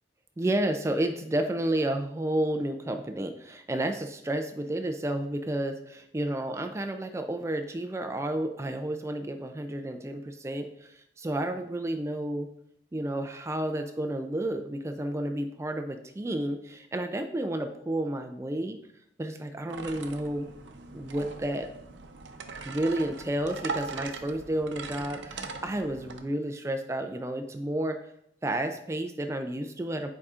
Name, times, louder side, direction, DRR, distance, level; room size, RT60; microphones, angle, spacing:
voice 1, 0.4-12.5 12.9-18.8 19.2-20.5 20.9-21.7 22.6-28.0 28.4-30.1, right 1 dB, 15° right, 6 dB, 0.3 m, -31 dB
sound 1, 19.7-26.2, right 4 dB, 85° right, 0.6 m, -40 dB
9.5 x 4.9 x 2.4 m, 0.75 s
head